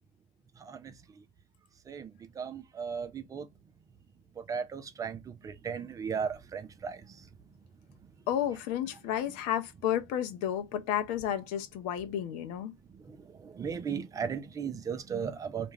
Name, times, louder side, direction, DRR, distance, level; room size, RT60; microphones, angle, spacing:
voice 1, 0.6-1.2 1.9-3.5 4.4-7.2 12.9-15.7, right 6 dB, 25° right, 0.5 m, -37 dB
voice 2, 8.3-12.7, left 10 dB, 65° left, 0.6 m, -32 dB
2.5 x 2.1 x 3.1 m
hypercardioid pair, 95°, 13 cm